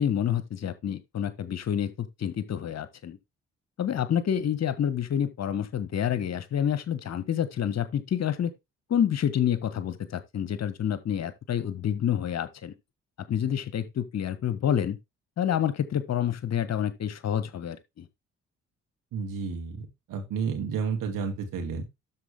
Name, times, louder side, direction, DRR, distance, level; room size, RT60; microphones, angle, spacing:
voice 1, 0.0-3.2 3.8-8.5 8.9-12.7 13.3-15.0 15.4-18.0, left 9 dB, 45° left, 1.2 m, -28 dB
voice 2, 19.1-21.8, right 5 dB, 60° right, 2.6 m, -31 dB
12.5 x 4.4 x 3.5 m
figure-of-eight pair, 40°, 37 cm